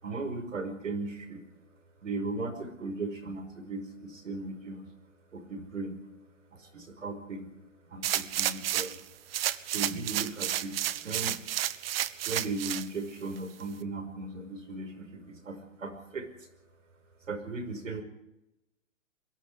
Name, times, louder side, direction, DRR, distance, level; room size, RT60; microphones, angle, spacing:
voice 1, 0.0-1.4 2.0-4.9 5.3-6.0 6.5-7.5 7.9-9.0 9.6-11.4 12.2-16.3 17.3-18.0, right 3 dB, 80° right, 6 dB, 5.7 m, -37 dB
sound 1, 8.0-9.0 9.3-12.9 13.4-13.5, right 12 dB, 50° right, 1.1 m, -31 dB
22.5 x 14.5 x 10.0 m, 0.89 s
figure-of-eight pair, 120°, 38 cm